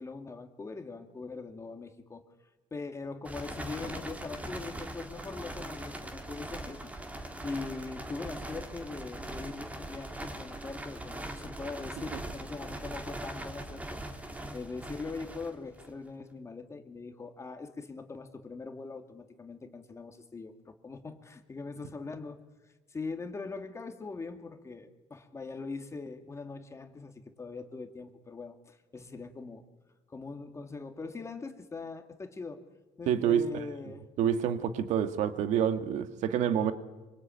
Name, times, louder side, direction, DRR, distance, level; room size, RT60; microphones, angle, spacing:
voice 1, 0.0-2.2 2.7-6.8 7.4-22.4 22.9-29.6 30.1-32.6 33.0-34.1, left 4 dB, 20° left, 2.3 m, -41 dB
sound 1, 3.2-16.1, right 1 dB, 10° right, 2.9 m, -41 dB
voice 2, 33.1-33.5 34.2-36.7, right 9 dB, 70° right, 2.0 m, -27 dB
26.0 x 24.5 x 9.2 m
cardioid pair, 120°, 13 cm